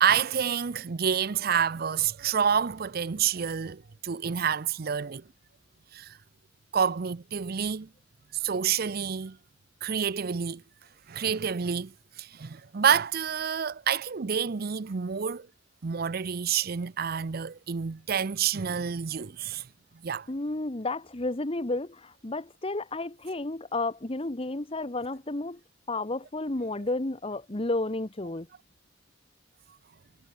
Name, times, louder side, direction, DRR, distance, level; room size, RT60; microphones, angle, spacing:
voice 1, 0.0-5.2 5.9-6.2 6.7-7.9 8.3-9.4 9.8-10.6 11.1-15.5 15.8-19.6 20.0-20.3, right 7 dB, 50° right, 0.6 m, -28 dB
voice 2, 20.3-25.6 25.9-28.5, left 2 dB, 30° left, 1.2 m, -32 dB
head